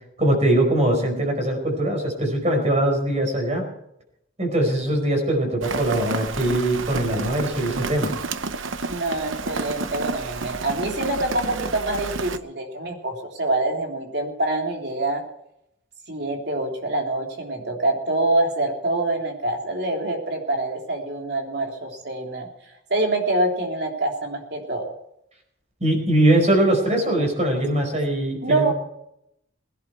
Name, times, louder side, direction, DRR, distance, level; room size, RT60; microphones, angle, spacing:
voice 1, 0.2-3.7 4.4-8.1 25.8-28.7, right 1 dB, 35° right, 3 dB, 4.9 m, -21 dB
Rain, 5.6-12.4, right 4 dB, 85° right, 0.9 m, -30 dB
voice 2, 8.9-15.2 16.1-22.5 22.9-24.9 28.4-28.7, right 2 dB, 55° right, 2 dB, 3.3 m, -25 dB
21.5 x 11.0 x 4.6 m, 0.77 s
head